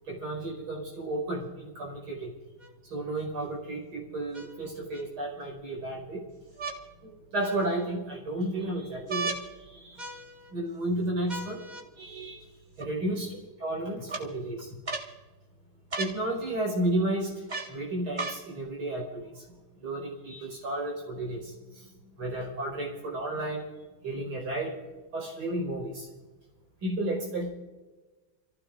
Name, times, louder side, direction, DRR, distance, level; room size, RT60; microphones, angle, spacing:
voice 1, 0.1-2.3 2.9-6.2 7.0-9.3 9.6-10.2 10.5-11.6 12.0-12.5 12.8-14.8 16.0-19.4 19.8-21.9 22.2-23.7 24.0-24.8 25.1-26.1 26.8-27.5, right 1 dB, 80° right, -1 dB, 5.7 m, -32 dB
sound 1, 2.6-2.7 4.3-5.0 6.6-6.8 7.4-7.9 9.1-9.4 10.0-10.5 11.3-11.8 12.8-12.9 14.1-14.2 14.9-15.1 15.9-16.2 17.5-17.7 18.2-18.4 19.3-19.4, right 3 dB, 25° right, 1.5 m, -36 dB
29.0 x 15.5 x 2.5 m, 1.2 s
omnidirectional pair, 2.4 m